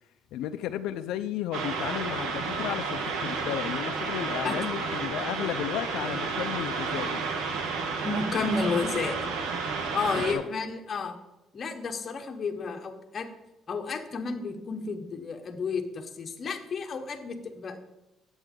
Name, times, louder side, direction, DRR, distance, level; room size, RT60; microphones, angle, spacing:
voice 1, 0.3-7.2 10.3-10.4, left 11 dB, 80° left, 9 dB, 0.4 m, -33 dB
sound 1, 1.5-10.3, right 4 dB, 80° right, 1.3 m, -31 dB
voice 2, 8.0-9.2 9.9-11.2 11.5-13.3 13.7-17.8, left 4 dB, 30° left, 5 dB, 0.9 m, -31 dB
9.0 x 7.9 x 3.7 m, 1.0 s
cardioid pair, 170°, 0 cm